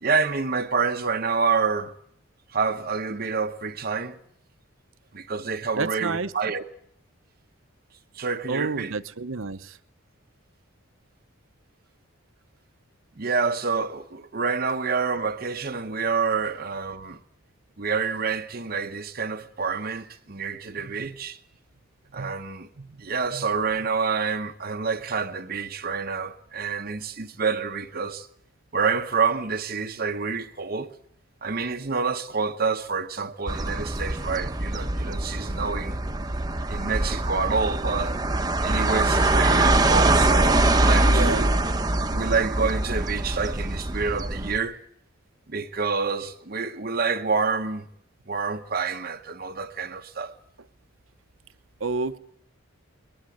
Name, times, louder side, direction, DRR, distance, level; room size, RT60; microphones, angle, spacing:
voice 1, 0.0-1.9 2.5-4.2 5.1-6.6 8.1-8.9 13.2-17.2 17.8-21.4 22.1-22.7 23.0-28.3 28.7-31.0 31.4-36.0 36.7-38.1 38.6-41.5 42.1-44.8 45.5-47.9 48.3-50.4, right 5 dB, 45° right, 0.9 m, -28 dB
voice 2, 5.8-6.3 8.5-9.8 21.0-21.1 22.2-22.3 22.8-23.0 23.3-23.4 41.1-41.5 51.8-52.2, right 4 dB, 75° right, 1.0 m, -29 dB
sound 1, 33.5-44.6, right 2 dB, 20° right, 1.0 m, -23 dB
22.0 x 21.0 x 7.8 m
head